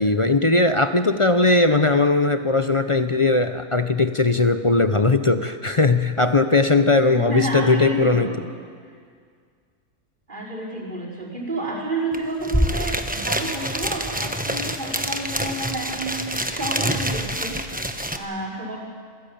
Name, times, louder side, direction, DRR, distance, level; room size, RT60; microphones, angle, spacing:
voice 1, 0.0-8.3, left 3 dB, 35° left, 9 dB, 0.5 m, -19 dB
voice 2, 7.0-8.5 10.3-17.6 18.1-18.8, right 1 dB, 30° right, -2 dB, 5.3 m, -30 dB
sound 1, 12.1-12.2 12.4-18.2, right 1 dB, 5° right, 1.0 m, -26 dB
26.5 x 16.5 x 8.7 m, 2.1 s
omnidirectional pair, 1.6 m